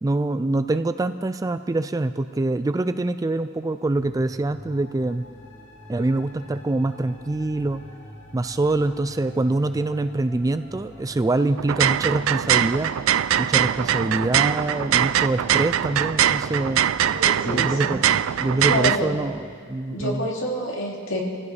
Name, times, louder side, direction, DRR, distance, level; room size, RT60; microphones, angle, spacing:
voice 1, 0.0-5.2 5.9-7.8 8.3-12.9 13.4-16.9 17.4-18.0 18.4-19.4 19.7-20.3, right 2 dB, 15° right, 11 dB, 0.3 m, -24 dB
sound 1, 3.9-19.5, equal, 35° left, 3.7 m, -45 dB
sound 2, 11.6-19.0, right 10 dB, 90° right, 0.4 m, -22 dB
voice 2, 17.1-17.9 18.7-19.1 19.9-21.2, equal, 70° left, -2 dB, 2.6 m, -27 dB
26.0 x 15.5 x 3.4 m, 2.1 s
head